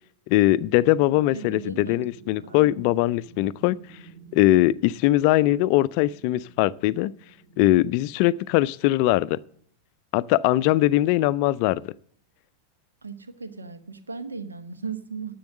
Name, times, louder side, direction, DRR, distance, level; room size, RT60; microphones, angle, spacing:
voice 1, 0.3-3.8 4.3-7.1 7.6-9.4 10.1-11.8, left 16 dB, 45° left, 0.4 m, -21 dB
sound 1, 0.5-9.6, right 4 dB, 45° right, 3.5 m, -50 dB
voice 2, 1.3-2.0 2.4-2.7 13.0-15.3, right 5 dB, 75° right, 1.0 m, -37 dB
10.5 x 7.7 x 7.5 m
figure-of-eight pair, 90°, 0 cm